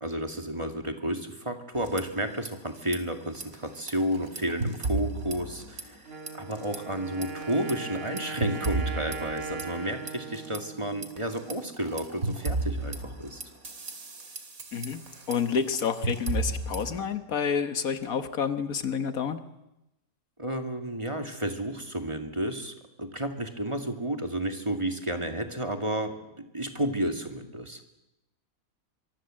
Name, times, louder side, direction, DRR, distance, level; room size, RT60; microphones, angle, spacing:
voice 1, 0.0-6.0 6.3-13.4 20.4-27.8, right 1 dB, 20° right, 5 dB, 2.3 m, -32 dB
sound 1, 1.7-2.5 2.8-3.0 3.3-6.0 6.3-6.8 7.2-10.6 11.0-17.0, right 2 dB, 80° right, 3.0 m, -34 dB
Wind instrument woodwind instrument, 6.1-11.8, right 4 dB, 45° right, 2.2 m, -40 dB
voice 2, 14.7-15.0 15.3-19.4, left 6 dB, 85° left, 10 dB, 1.9 m, -29 dB
24.5 x 23.5 x 7.7 m, 0.91 s
omnidirectional pair, 1.5 m